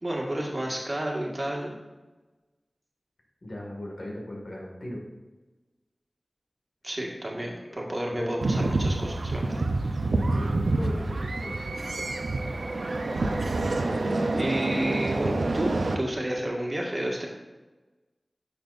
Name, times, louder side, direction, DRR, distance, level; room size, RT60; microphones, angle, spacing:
voice 1, 0.0-1.7 6.8-9.6 14.3-17.3, right 1 dB, 35° right, -1 dB, 1.7 m, -31 dB
voice 2, 3.4-5.0 8.2-8.4 10.1-12.1, left 1 dB, 65° left, -2 dB, 2.0 m, -37 dB
sound 1, 8.4-15.9, right 2 dB, 85° right, 0.6 m, -27 dB
10.0 x 6.1 x 2.6 m, 1.2 s
wide cardioid pair, 45°, 0 cm